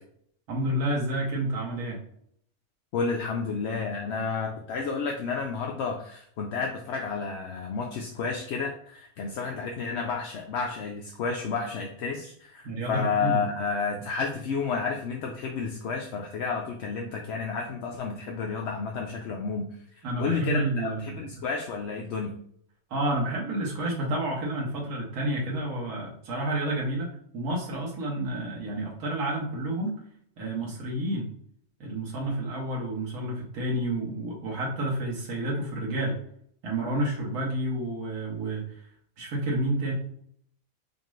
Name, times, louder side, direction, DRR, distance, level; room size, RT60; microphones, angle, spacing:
voice 1, 0.5-2.0 12.6-13.4 20.0-21.4 22.9-27.1 27.3-30.0 30.4-31.3 31.8-36.2 36.6-38.6 39.2-39.9, right 1 dB, 90° right, -3 dB, 1.6 m, -30 dB
voice 2, 2.9-19.8 20.2-22.4, left 5 dB, 65° left, 1 dB, 0.7 m, -31 dB
5.1 x 2.4 x 3.1 m, 0.66 s
omnidirectional pair, 1.5 m